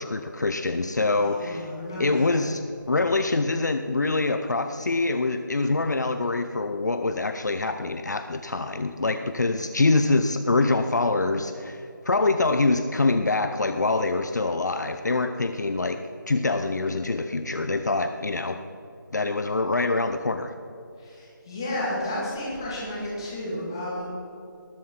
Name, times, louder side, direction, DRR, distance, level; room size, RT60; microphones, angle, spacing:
voice 1, 0.0-1.7 2.0-2.6 2.9-16.0 16.3-18.6 19.1-20.5, left 3 dB, 55° left, 7 dB, 0.6 m, -25 dB
voice 2, 1.1-2.4 21.0-24.0, left 1 dB, 10° left, -6 dB, 1.8 m, -32 dB
19.0 x 7.2 x 4.4 m, 2.7 s
figure-of-eight pair, 180°, 11 cm